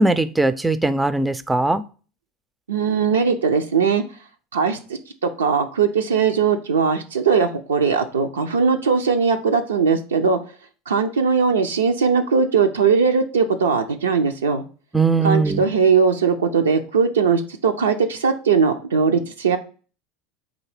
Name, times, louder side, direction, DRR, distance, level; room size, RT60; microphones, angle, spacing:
voice 1, 0.0-1.8 14.9-15.6, right 3 dB, 10° right, 0.4 m, -19 dB
voice 2, 2.7-4.0 4.5-10.4 10.9-14.6 15.2-19.6, right 5 dB, 90° right, 0.4 m, -19 dB
3.9 x 2.6 x 4.8 m
hypercardioid pair, 85°, 0 cm